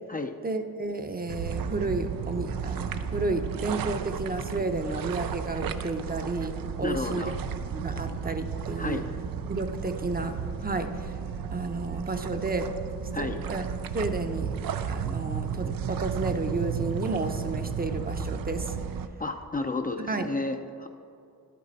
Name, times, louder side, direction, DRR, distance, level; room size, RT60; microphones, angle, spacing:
voice 1, 0.4-7.3 7.7-9.0 9.5-11.2 11.5-12.7 13.2-14.5 14.9-18.8 20.1-20.3, right 3 dB, 25° right, 6 dB, 0.7 m, -32 dB
sound 1, 1.3-19.1, right 7 dB, 85° right, 0.6 m, -33 dB
voice 2, 6.8-7.3 8.8-9.1 13.1-13.4 19.2-20.9, left 3 dB, 25° left, 5 dB, 0.5 m, -32 dB
11.0 x 8.4 x 4.1 m, 2.7 s
cardioid pair, 80°, 33 cm